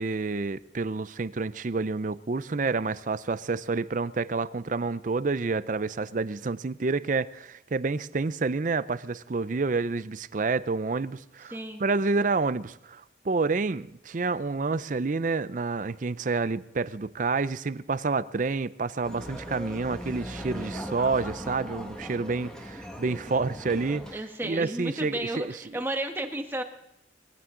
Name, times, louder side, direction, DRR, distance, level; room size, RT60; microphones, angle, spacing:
voice 1, 0.0-25.5, right 4 dB, 45° right, 0.5 m, -29 dB
voice 2, 11.5-11.8 24.1-26.6, right 1 dB, 10° right, 1.3 m, -33 dB
sound 1, 19.0-24.1, equal, 5° left, 1.6 m, -39 dB
20.5 x 15.5 x 3.8 m
head